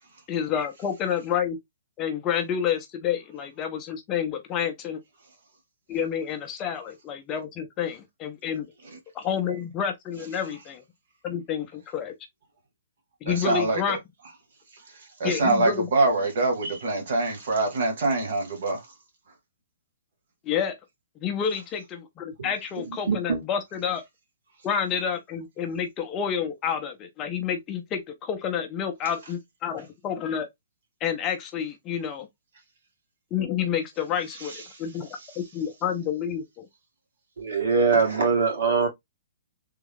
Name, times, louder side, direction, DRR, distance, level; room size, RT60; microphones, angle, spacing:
voice 1, 0.3-1.6 2.0-5.0 5.9-8.7 9.1-10.8 11.2-12.1 13.2-14.0 15.2-15.9 16.2-16.3 20.4-20.7 21.2-24.0 24.6-30.5 31.0-32.3 33.3-35.1 35.4-36.7, left 8 dB, 15° left, 0.4 m, -29 dB
voice 2, 13.3-14.0 15.2-18.9, right 2 dB, 50° right, 1.3 m, -24 dB
voice 3, 23.1-23.4 37.4-38.9, right 5 dB, 85° right, 2.1 m, -22 dB
3.5 x 2.2 x 3.6 m
hypercardioid pair, 180°, 0 cm